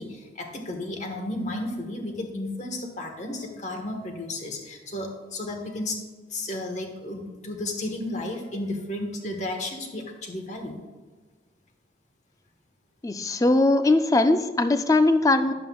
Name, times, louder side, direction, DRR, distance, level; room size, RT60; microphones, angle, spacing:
voice 1, 0.0-6.0 6.3-10.8, left 1 dB, 40° left, 3 dB, 1.2 m, -33 dB
voice 2, 13.0-15.5, left 2 dB, 20° left, 9 dB, 0.4 m, -20 dB
11.0 x 7.5 x 2.3 m, 1.3 s
head